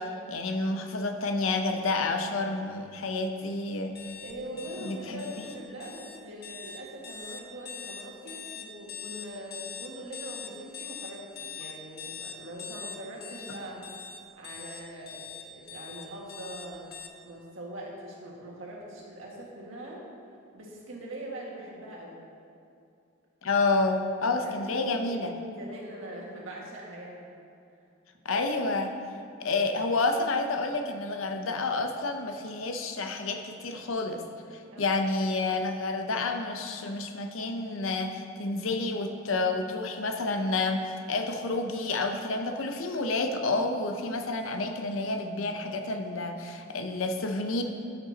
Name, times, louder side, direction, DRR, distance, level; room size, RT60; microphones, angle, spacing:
voice 1, 0.0-3.9 4.8-5.2 23.4-25.3 28.2-28.9 29.4-34.2 34.5-47.6, left 3 dB, 85° left, 5 dB, 0.7 m, -29 dB
sound 1, 3.9-17.1, left 7 dB, 55° left, 0.7 m, -42 dB
voice 2, 4.2-13.8 14.4-16.8 17.2-20.0 20.5-22.2 24.3-27.3 34.7-35.0, right 1 dB, 80° right, -3 dB, 1.8 m, -42 dB
13.0 x 6.8 x 2.9 m, 2.6 s
head